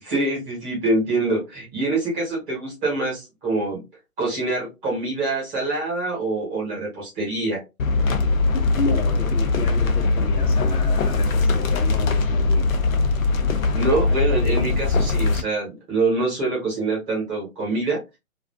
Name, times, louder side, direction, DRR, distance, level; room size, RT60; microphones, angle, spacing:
voice 1, 0.0-3.8 4.2-7.6 13.7-18.0, right 2 dB, 15° right, 1.0 m, -25 dB
sound 1, 7.8-15.4, left 3 dB, 65° left, 0.6 m, -21 dB
voice 2, 8.5-12.7, left 3 dB, 85° left, 0.9 m, -32 dB
2.4 x 2.3 x 2.2 m
hypercardioid pair, 140°, 44 cm